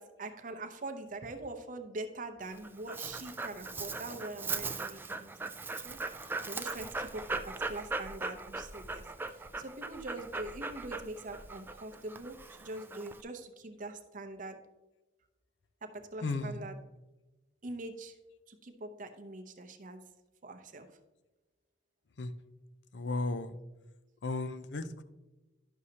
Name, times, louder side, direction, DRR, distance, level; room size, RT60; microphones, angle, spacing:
voice 1, 0.0-14.6 15.8-16.8 17.6-18.2 18.5-20.0 20.4-20.9, right 2 dB, 45° right, 7 dB, 0.7 m, -43 dB
Dog, 2.4-13.2, right 3 dB, 10° right, 0.3 m, -39 dB
voice 2, 16.2-16.6 22.2-22.3 22.9-23.5 24.2-25.0, left 2 dB, 70° left, 12 dB, 0.5 m, -34 dB
11.0 x 6.3 x 2.8 m, 1.1 s
head